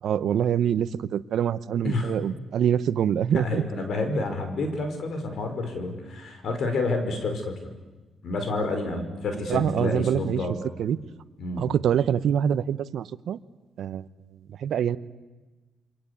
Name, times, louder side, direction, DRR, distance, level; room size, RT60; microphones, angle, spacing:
voice 1, 0.0-3.6 9.5-10.4 10.8-11.0 11.6-13.4 13.8-14.1 14.5-15.0, right 9 dB, 70° right, 15 dB, 1.0 m, -25 dB
voice 2, 3.4-7.5 8.2-10.6 11.4-11.8, left 2 dB, 65° left, 6 dB, 5.6 m, -29 dB
28.5 x 24.5 x 8.6 m, 1.2 s
cardioid pair, 95°, 0 cm